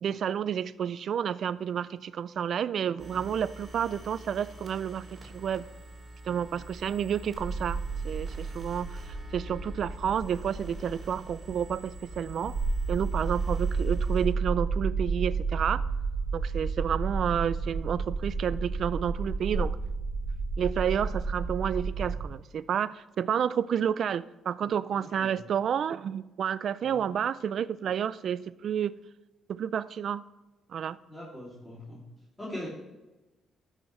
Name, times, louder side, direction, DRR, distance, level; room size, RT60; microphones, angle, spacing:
voice 1, 0.0-5.6 6.3-7.8 8.0-12.6 12.9-15.8 16.3-19.8 20.6-28.9 29.5-30.2 30.7-31.0, right 8 dB, 60° right, 18 dB, 0.3 m, -30 dB
sound 1, 3.0-14.3, right 2 dB, 30° right, 3.2 m, -46 dB
sound 2, 7.3-22.2, right 4 dB, 10° right, 2.4 m, -32 dB
voice 2, 25.0-25.4 26.8-27.0 31.1-32.0 32.4-32.7, left 1 dB, 20° left, -8 dB, 2.9 m, -41 dB
13.5 x 6.3 x 3.2 m, 1.1 s
cardioid pair, 90°, 0 cm